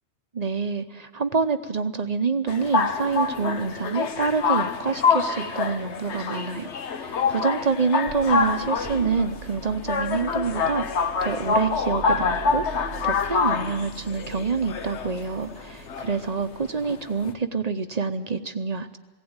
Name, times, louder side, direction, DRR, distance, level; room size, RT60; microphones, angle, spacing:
voice 1, 0.3-19.0, right 5 dB, 40° right, 9 dB, 0.8 m, -27 dB
sound 1, 2.5-17.3, left 5 dB, 75° left, 1.3 m, -26 dB
sound 2, 8.1-16.9, right 7 dB, 80° right, 1.2 m, -42 dB
19.5 x 16.5 x 8.8 m, 1.3 s
omnidirectional pair, 1.2 m